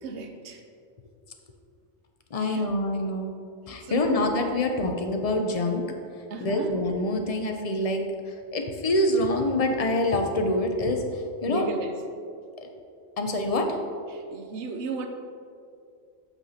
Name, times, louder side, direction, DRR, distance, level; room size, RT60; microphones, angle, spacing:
voice 1, 0.0-0.6 2.4-2.6 3.8-4.2 6.3-6.8 11.5-11.9 14.1-15.1, right 4 dB, 70° right, 5 dB, 0.9 m, -34 dB
voice 2, 2.3-3.3 3.7-5.8 6.4-11.7 12.6-12.7 13.2-13.8, left 1 dB, 45° left, 4 dB, 0.5 m, -26 dB
8.1 x 5.8 x 2.8 m, 2.4 s
omnidirectional pair, 1.2 m